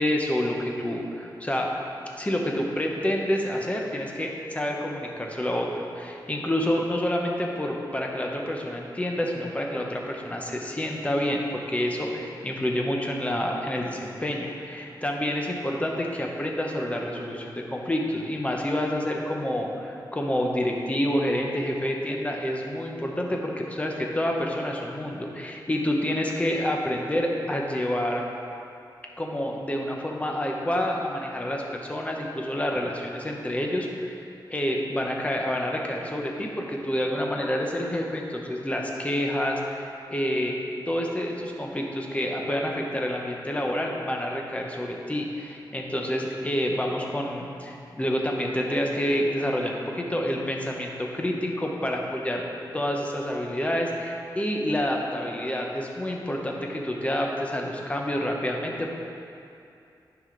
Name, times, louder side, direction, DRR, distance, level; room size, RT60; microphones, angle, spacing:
voice 1, 0.0-1.7 2.1-28.2 29.2-34.2 34.5-39.8 40.1-40.5 40.9-52.5 52.7-58.9, equal, 15° left, 0 dB, 0.8 m, -28 dB
11.0 x 4.9 x 3.8 m, 2.6 s
wide cardioid pair, 130°, 8 cm